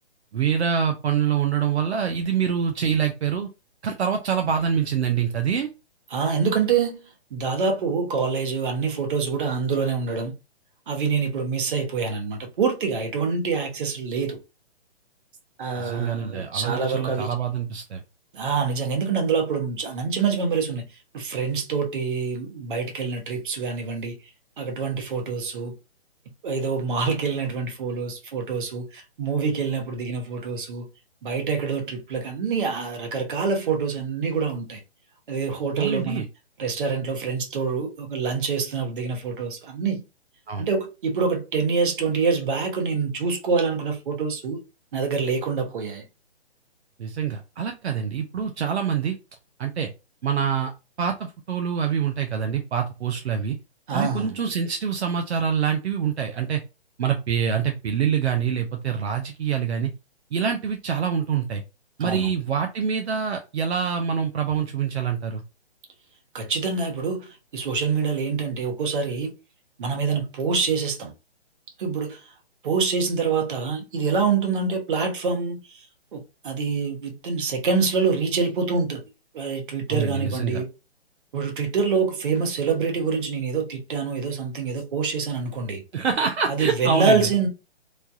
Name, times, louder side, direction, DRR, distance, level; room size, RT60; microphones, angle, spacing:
voice 1, 0.3-3.5 3.8-5.7 15.8-18.0 35.8-36.2 40.5-40.7 47.0-49.2 49.6-49.9 50.2-50.7 51.0-53.6 53.9-56.6 57.0-59.9 60.3-61.6 62.0-65.4 79.9-80.6 85.9-87.3, right 7 dB, 75° right, 0.6 m, -25 dB
voice 2, 6.1-7.0 7.3-10.3 10.9-14.4 15.6-17.3 18.3-20.8 21.1-24.2 24.6-25.7 26.4-30.9 31.2-34.8 35.3-36.2 36.6-40.0 40.6-44.6 44.9-46.0 53.9-54.4 62.0-62.3 66.3-69.3 69.8-71.1 71.8-72.2 72.6-75.8 76.1-79.0 79.3-80.7 81.3-85.8 86.5-87.5, right 5 dB, 50° right, 1.0 m, -26 dB
3.2 x 2.2 x 2.6 m
hypercardioid pair, 150°, 33 cm